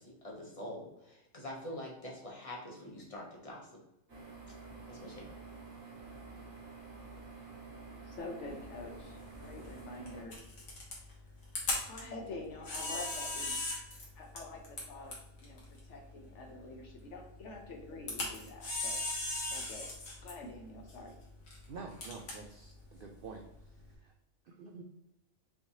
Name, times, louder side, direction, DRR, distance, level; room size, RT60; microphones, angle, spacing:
voice 1, 0.0-3.8 4.9-5.3, left 1 dB, 25° left, -2 dB, 1.1 m, -45 dB
sound 1, 4.1-10.2, right 3 dB, 80° right, 2.2 m, -49 dB
voice 2, 8.1-10.4 11.8-13.6 14.2-19.0 19.5-19.9 20.2-21.1, left 2 dB, 65° left, 3 dB, 1.1 m, -47 dB
Camera, 8.5-23.9, left 2 dB, 85° left, 1.7 m, -41 dB
voice 3, 21.7-23.4 24.0-24.1 24.5-24.8, right 4 dB, 65° right, 2 dB, 0.5 m, -47 dB
5.4 x 3.2 x 2.8 m, 0.85 s
omnidirectional pair, 1.4 m